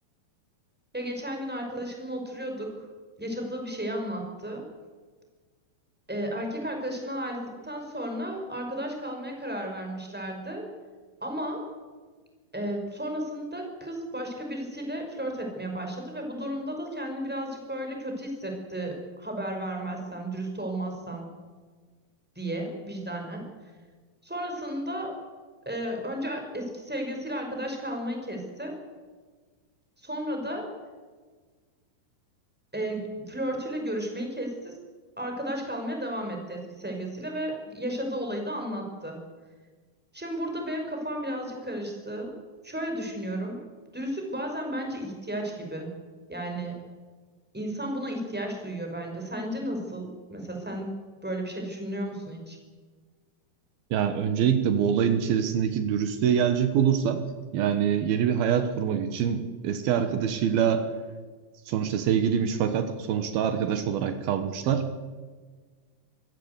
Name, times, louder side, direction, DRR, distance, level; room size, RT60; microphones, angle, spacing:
voice 1, 0.9-2.7 3.2-4.6 6.1-10.7 11.2-11.7 12.5-21.3 22.3-23.5 24.2-25.1 25.6-28.8 30.0-30.7 32.7-34.8 35.2-39.2 40.1-42.3 42.6-43.6 43.9-45.9 46.3-46.8 47.5-50.9 51.2-52.6, right 1 dB, ahead, 2 dB, 5.0 m, -33 dB
voice 2, 53.9-57.2 57.5-60.8 61.7-64.9, right 8 dB, 75° right, 8 dB, 3.1 m, -25 dB
25.5 x 16.0 x 8.2 m, 1.4 s
omnidirectional pair, 4.4 m